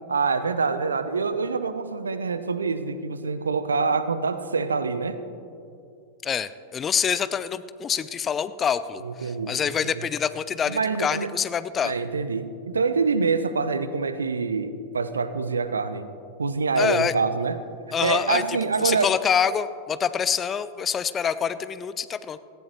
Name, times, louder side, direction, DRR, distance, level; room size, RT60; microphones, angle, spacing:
voice 1, 0.1-5.2 9.0-9.6 10.7-11.3 11.8-16.1 16.4-17.6 18.0-19.1, right 4 dB, 75° right, 12 dB, 0.7 m, -25 dB
voice 2, 6.2-11.9 16.8-17.1 17.9-22.4, left 7 dB, 25° left, 14 dB, 0.5 m, -26 dB
17.5 x 15.0 x 3.1 m, 2.5 s
figure-of-eight pair, 90°, 0 cm